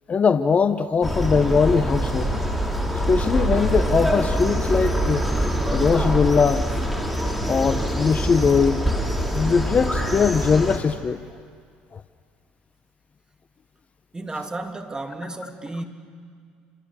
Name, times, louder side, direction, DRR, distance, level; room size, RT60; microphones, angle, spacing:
voice 1, 0.1-2.3 3.1-5.3 5.7-6.6 7.5-8.9 9.3-11.2 11.9-12.0, left 5 dB, 35° left, 12 dB, 1.0 m, -20 dB
sound 1, 1.0-10.8, equal, ahead, 3.8 m, -24 dB
voice 2, 14.1-15.8, right 2 dB, 20° right, 5 dB, 2.9 m, -33 dB
30.0 x 27.0 x 7.0 m, 2.1 s
hypercardioid pair, 70°, 4 cm